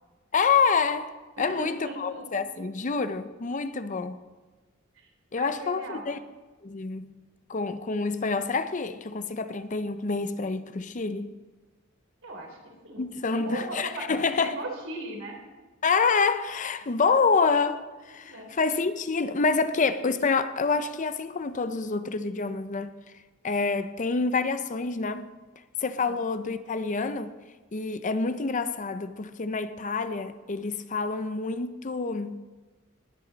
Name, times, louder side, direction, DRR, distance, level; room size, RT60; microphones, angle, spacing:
voice 1, 0.3-1.1 1.4-4.2 5.3-6.2 6.6-7.1 7.5-11.3 13.0-14.5 15.8-17.8 18.1-22.9 23.4-25.3 25.8-27.3 27.7-32.4, left 4 dB, 40° left, 0.6 m, -27 dB
voice 2, 1.4-2.3 4.9-5.1 5.3-6.1 12.2-13.0 13.3-15.4 18.2-18.5 26.0-26.2, right 2 dB, 75° right, 3.4 m, -38 dB
19.0 x 10.5 x 4.0 m
head